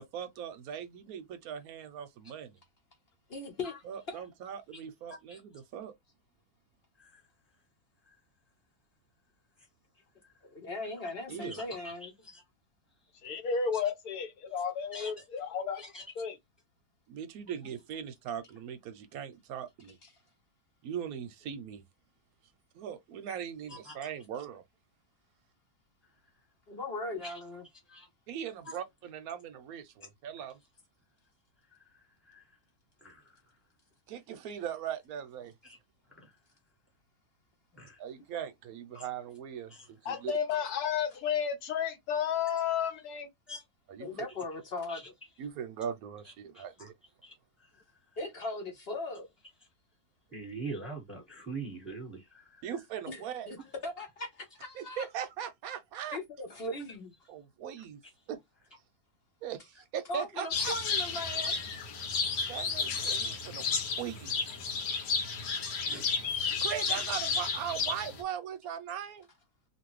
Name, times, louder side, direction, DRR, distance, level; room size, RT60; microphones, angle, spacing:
voice 1, 0.0-2.6 3.8-5.9 11.3-11.6 17.1-20.0 20.8-21.8 22.7-24.6 28.3-30.6 34.1-35.5 38.0-40.3 43.9-44.1 45.4-46.9 52.6-53.5 54.7-56.2 57.3-58.0 58.3-58.4 59.4-60.7 62.5-63.7 63.9-64.4 66.6-69.3, right 8 dB, 70° right, 1.0 m, -39 dB
voice 2, 3.3-3.7 4.1-4.2 10.4-12.1 20.0-20.1 26.7-27.6 44.0-45.0 48.2-49.3 53.1-53.6 53.8-55.1 56.1-57.1 60.1-61.6 64.9-65.1, left 2 dB, 45° left, 0.9 m, -38 dB
voice 3, 11.8-12.4 14.9-15.1 15.8-16.0 23.7-24.0 27.2-27.3 27.9-28.1 31.7-31.8 32.2-32.4 33.0-33.3 35.6-35.8 36.1-36.3 37.7-38.0 38.9-39.1 39.7-39.9 43.5-43.6 44.9-45.1 46.5-46.6 47.2-47.3 47.6-47.7 50.3-52.6 65.8-66.1, right 3 dB, ahead, 1.3 m, -43 dB
voice 4, 13.2-15.8 16.2-16.4 40.0-43.3, left 7 dB, 70° left, 1.2 m, -32 dB
sound 1, 60.5-68.2, left 5 dB, 85° left, 1.4 m, -32 dB
2.8 x 2.5 x 3.0 m
omnidirectional pair, 1.7 m